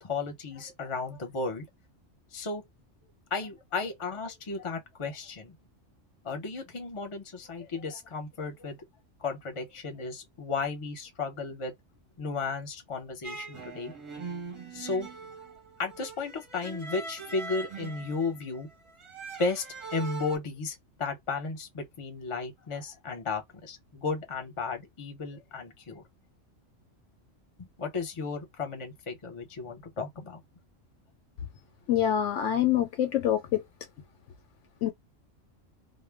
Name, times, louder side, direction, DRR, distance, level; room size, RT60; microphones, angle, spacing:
voice 1, 0.0-1.6 2.3-2.6 3.3-5.5 6.2-8.8 9.2-11.7 12.2-13.9 14.7-15.1 15.8-18.7 19.4-19.6 19.9-26.0 27.6-30.4, left 4 dB, 30° left, 0.7 m, -34 dB
sound 1, 13.2-20.4, right 4 dB, 30° right, 0.7 m, -41 dB
voice 2, 31.9-33.6 34.8-34.9, left 11 dB, 70° left, 0.9 m, -25 dB
2.2 x 2.1 x 3.3 m
omnidirectional pair, 1.3 m